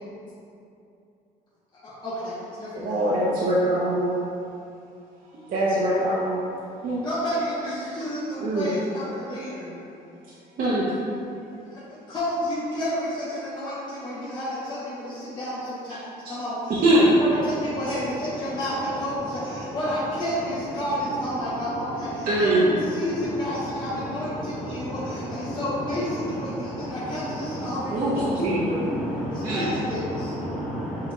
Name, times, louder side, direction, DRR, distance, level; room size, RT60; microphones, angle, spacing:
voice 1, 1.7-3.0 7.0-9.8 11.7-16.8 17.2-28.3 29.3-30.3, equal, 25° left, -10 dB, 0.9 m, -31 dB
voice 2, 2.7-4.2 5.5-6.4 6.8-7.0 8.4-8.7 10.6-10.8 16.8-17.1 22.3-22.7 27.9-28.1 28.4-28.8 29.4-29.7, right 1 dB, 55° right, -8 dB, 0.7 m, -22 dB
voice 3, 24.4-25.6 26.5-26.9 27.6-29.7 30.1-31.1, equal, ahead, -7 dB, 0.8 m, -32 dB
6.4 x 2.8 x 2.3 m, 2.7 s
cardioid pair, 110°, 17 cm